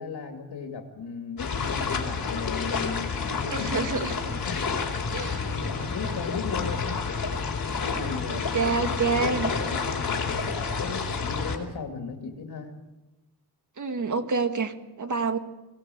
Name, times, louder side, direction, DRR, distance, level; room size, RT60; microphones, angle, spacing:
voice 1, 0.0-3.9 4.4-7.0 7.8-12.8, left 5 dB, 90° left, 3 dB, 2.5 m, -37 dB
sound 1, 1.4-11.6, left 5 dB, 60° left, 3.8 m, -29 dB
voice 2, 3.5-4.4 5.1-5.5 8.3-9.5 13.8-15.4, right 4 dB, 50° right, 7 dB, 1.8 m, -28 dB
23.5 x 17.5 x 7.9 m, 1.1 s
wide cardioid pair, 170°, 38 cm